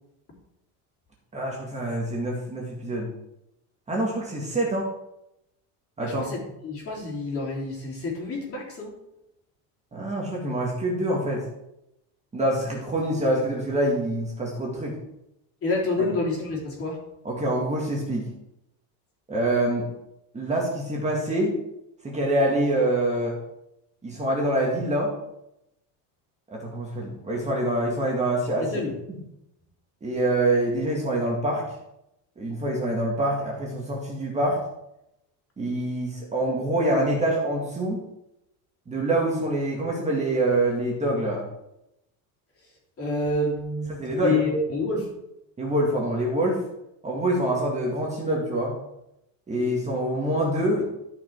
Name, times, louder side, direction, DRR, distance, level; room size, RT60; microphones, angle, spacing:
voice 1, 1.3-3.1 3.9-4.9 6.0-6.3 9.9-11.4 12.3-15.0 17.2-18.3 19.3-19.9 20.3-21.6 22.0-23.4 24.0-25.1 26.5-28.8 29.1-29.2 30.0-31.6 32.4-34.6 35.6-38.0 38.9-41.4 43.9-44.5 45.6-46.6 47.0-48.7 49.5-50.8, right 1 dB, 15° right, -3 dB, 2.0 m, -25 dB
voice 2, 6.6-8.9 15.6-17.0 28.7-28.9 43.0-43.9 44.2-45.1, left 2 dB, 30° left, -3 dB, 3.3 m, -27 dB
12.5 x 6.0 x 4.6 m, 0.85 s
cardioid pair, 155°, 43 cm